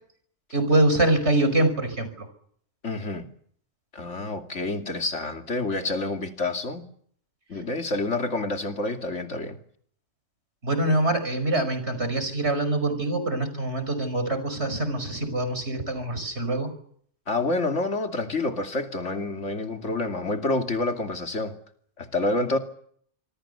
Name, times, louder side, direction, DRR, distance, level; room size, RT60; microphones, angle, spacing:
voice 1, 0.5-2.3 10.6-16.7, right 1 dB, 65° right, 10 dB, 5.8 m, -24 dB
voice 2, 2.8-3.3 3.9-6.9 7.5-9.6 17.3-21.6 22.0-22.6, left 2 dB, 75° left, 5 dB, 2.9 m, -28 dB
27.0 x 23.5 x 6.9 m, 0.62 s
omnidirectional pair, 1.2 m